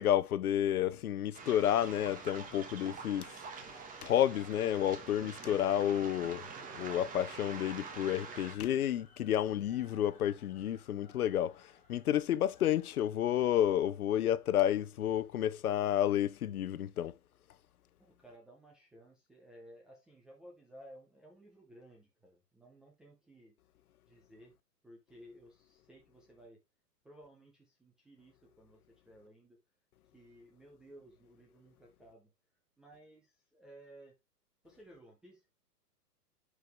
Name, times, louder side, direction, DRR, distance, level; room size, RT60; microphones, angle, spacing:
voice 1, 0.0-3.4 4.0-17.2, left 11 dB, 65° left, 0.7 m, -31 dB
Waves surf, 1.3-8.5, right 5 dB, 15° right, 1.5 m, -46 dB
sound 1, 2.0-15.1, left 5 dB, 15° left, 1.5 m, -61 dB
voice 2, 18.0-23.5 24.1-24.5 24.8-26.6 27.0-29.6 30.1-32.3 32.8-34.2 34.6-35.4, right 1 dB, ahead, 0.4 m, -57 dB
10.5 x 4.8 x 3.3 m
hypercardioid pair, 120°, 48 cm